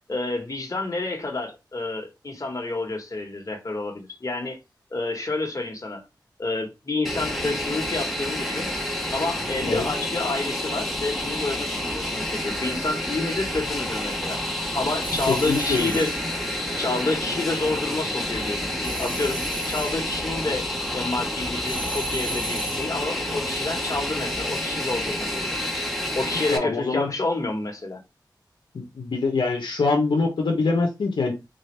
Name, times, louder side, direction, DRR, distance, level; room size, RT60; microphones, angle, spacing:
voice 1, 0.1-4.6 4.9-6.0 6.4-8.7 9.1-14.4 14.7-16.1 16.8-20.7 20.9-25.5 26.1-28.0, left 2 dB, 45° left, 1.5 m, -29 dB
Fixed-wing aircraft airplane, 7.0-26.6, left 1 dB, ahead, 1.4 m, -29 dB
sound 1, 15.0-16.2 18.8-20.0 21.7-22.9, right 4 dB, 85° right, 1.1 m, -36 dB
voice 2, 15.3-16.0 26.5-27.1 28.7-31.3, left 3 dB, 85° left, 0.9 m, -24 dB
4.0 x 2.6 x 3.3 m
cardioid pair, 45°, 8 cm